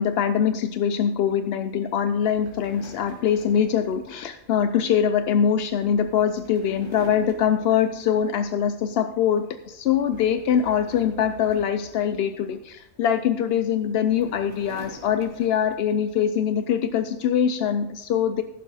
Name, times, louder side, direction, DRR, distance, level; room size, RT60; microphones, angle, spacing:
voice 1, 0.0-18.4, left 8 dB, 65° left, 10 dB, 0.6 m, -23 dB
sound 1, 2.2-8.7 9.1-9.4 9.8-12.8 13.6-16.1, right 1 dB, 20° right, 2.2 m, -47 dB
15.5 x 7.0 x 4.0 m, 0.87 s
omnidirectional pair, 1.5 m